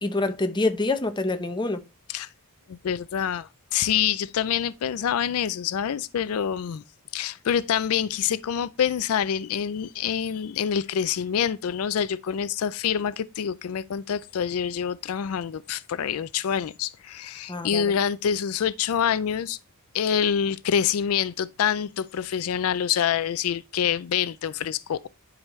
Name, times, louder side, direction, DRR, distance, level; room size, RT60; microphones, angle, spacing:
voice 1, 0.0-1.8 17.5-17.9, left 2 dB, 20° left, 0.7 m, -26 dB
voice 2, 2.7-6.8 7.1-19.6 19.9-25.1, left 8 dB, 70° left, 0.4 m, -26 dB
10.5 x 4.9 x 3.1 m
head